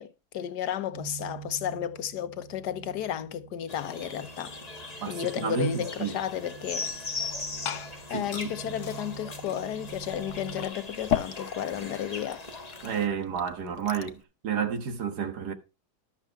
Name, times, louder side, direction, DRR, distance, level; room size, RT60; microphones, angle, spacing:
voice 1, 0.0-4.5 5.1-6.9 8.1-12.4, left 10 dB, 85° left, 1.4 m, -33 dB
sound 1, 0.9-10.7, right 8 dB, 30° right, 1.1 m, -46 dB
sound 2, 3.7-13.1, left 3 dB, 25° left, 1.5 m, -40 dB
voice 2, 5.0-6.1 8.1-8.7 12.8-15.5, right 7 dB, 75° right, 2.0 m, -31 dB
Glass / Fill (with liquid), 7.2-14.2, left 9 dB, 55° left, 1.0 m, -38 dB
12.0 x 7.2 x 4.6 m
omnidirectional pair, 1.7 m